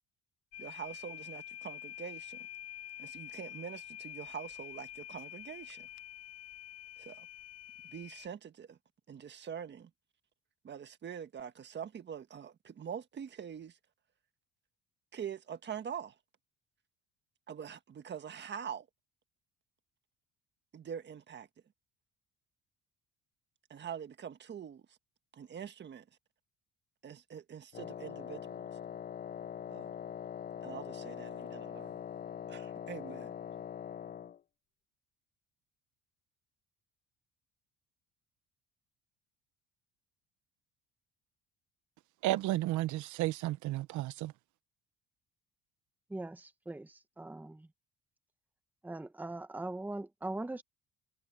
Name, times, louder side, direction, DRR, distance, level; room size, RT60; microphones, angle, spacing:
sound 1, 0.5-8.3, left 11 dB, 55° left, 1.1 m, -47 dB
voice 1, 0.6-2.5 3.0-5.9 7.0-7.3 7.8-8.8 9.1-9.9 10.6-13.8 15.1-16.2 17.5-18.9 20.7-21.5 23.7-25.0 25.3-26.1 27.0-28.6 29.7-29.9 30.6-32.0 32.5-33.3, right 8 dB, 35° right, 1.5 m, -44 dB
Wind instrument woodwind instrument, 27.7-34.4, left 9 dB, 30° left, 0.5 m, -43 dB
voice 2, 42.2-44.3, right 16 dB, 75° right, 1.0 m, -32 dB
voice 3, 46.1-47.7 48.8-50.6, right 2 dB, 5° right, 1.1 m, -41 dB
cardioid pair, 130°, 30 cm